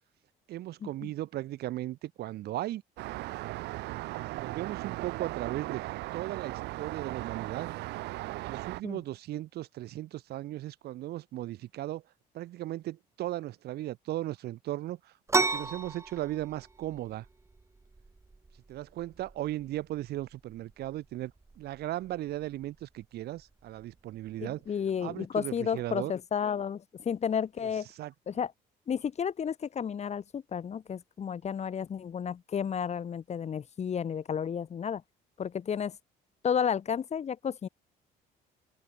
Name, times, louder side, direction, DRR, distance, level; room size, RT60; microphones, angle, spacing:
voice 1, 0.5-2.8 4.3-5.8 6.1-7.7 8.4-12.0 12.3-17.3 18.7-21.3 21.6-24.7 25.0-26.1 27.6-28.1, right 15 dB, 70° right, 2.2 m, -37 dB
Traffic noise roadway noise, 3.0-8.8, right 19 dB, 90° right, 3.5 m, -37 dB
sound 1, 15.3-24.7, right 3 dB, 15° right, 2.2 m, -37 dB
voice 2, 24.4-27.9 28.3-28.5 28.9-35.0 35.4-36.0 36.4-37.7, left 7 dB, 40° left, 2.6 m, -32 dB
open air
cardioid pair, 110°, 17 cm